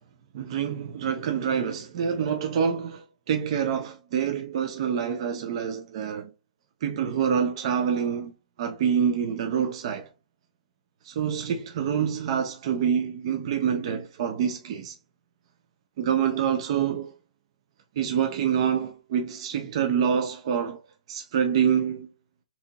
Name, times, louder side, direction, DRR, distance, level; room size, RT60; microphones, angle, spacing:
voice 1, 0.3-6.3 6.8-8.3 8.6-10.1 11.0-15.0 16.0-17.1 18.0-20.8 21.1-22.1, right 8 dB, 45° right, 0.5 m, -26 dB
4.0 x 2.9 x 2.2 m
hypercardioid pair, 155°, 4 cm